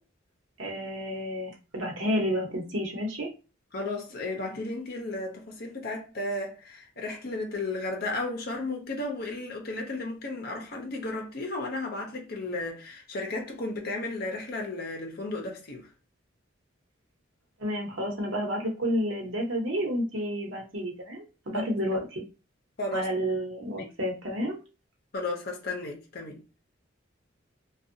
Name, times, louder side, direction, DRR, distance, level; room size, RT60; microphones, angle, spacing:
voice 1, 0.6-3.3 17.6-22.2 22.9-24.6, equal, 85° right, 0.9 m, -30 dB
voice 2, 3.7-15.9 21.5-21.6 22.8-23.1 23.7-23.9 25.1-26.4, left 2 dB, 50° left, 0.7 m, -34 dB
2.6 x 2.3 x 2.6 m
head